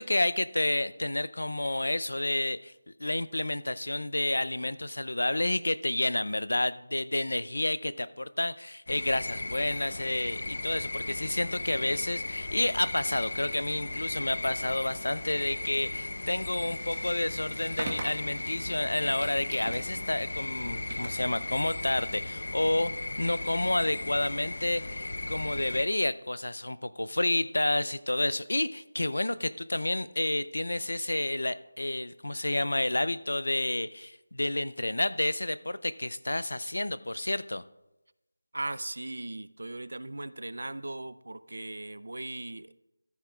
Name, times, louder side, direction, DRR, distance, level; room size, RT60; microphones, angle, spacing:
voice 1, 0.0-22.9 23.2-37.6, left 1 dB, 85° left, 16 dB, 0.5 m, -30 dB
sound 1, 8.9-25.8, left 2 dB, 55° left, 0.7 m, -36 dB
sound 2, 15.0-23.7, right 3 dB, 30° right, 1.0 m, -45 dB
voice 2, 38.5-42.7, right 2 dB, 70° right, 16 dB, 0.4 m, -38 dB
14.0 x 9.4 x 2.4 m, 0.96 s
figure-of-eight pair, 175°, 0 cm